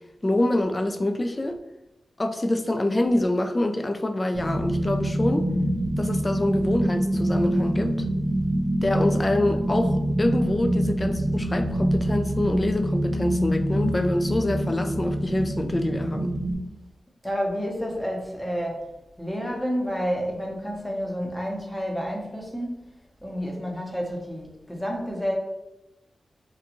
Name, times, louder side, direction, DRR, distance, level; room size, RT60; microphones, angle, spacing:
voice 1, 0.2-1.6 2.2-5.4 6.0-7.9 8.8-16.3, left 1 dB, 30° left, 7 dB, 0.3 m, -25 dB
sound 1, 4.3-16.5, right 1 dB, 75° right, 0.5 m, -25 dB
voice 2, 17.2-18.9 19.2-22.8 23.2-25.4, equal, 5° left, -1 dB, 0.7 m, -29 dB
2.4 x 2.3 x 2.9 m, 0.93 s
cardioid pair, 55°, 0 cm